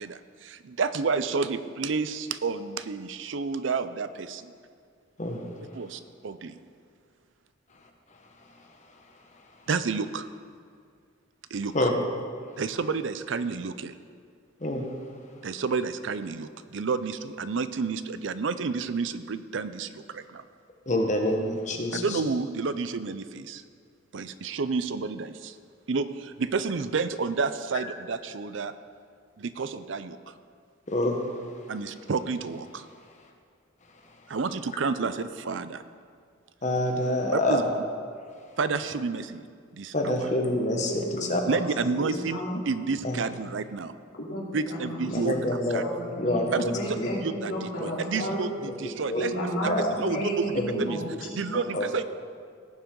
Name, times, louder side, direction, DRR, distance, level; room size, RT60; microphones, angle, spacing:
voice 1, 0.0-4.5 5.7-6.6 9.7-10.3 11.5-11.7 12.6-13.9 15.4-20.4 22.0-23.6 24.1-25.6 25.9-28.7 29.4-30.3 31.7-32.9 34.3-35.8 37.3-37.6 38.6-39.4 39.7-40.2 41.5-42.4 42.7-43.9 44.5-45.4 45.7-45.8 46.5-46.7 47.2-47.5 47.8-49.7 50.0-50.5 50.8-51.0 51.3-52.0, right 4 dB, 65° right, 13 dB, 0.5 m, -30 dB
voice 2, 20.9-22.2 30.9-31.2 36.6-37.6 39.9-41.0 41.3-41.6 43.0-43.2 45.1-45.8 46.2-47.1 47.8-47.9 48.2-48.3 48.6-48.7 49.1-49.2 49.7-49.9 50.5-50.9 51.7-51.9, left 1 dB, 35° left, 2 dB, 1.2 m, -27 dB
voice 3, 21.8-22.2 37.0-37.3 40.9-42.6 44.1-45.4 45.8-48.5 49.1-51.0 51.3-51.6, equal, 75° left, -5 dB, 3.1 m, -33 dB
17.5 x 7.3 x 3.9 m, 2.2 s
head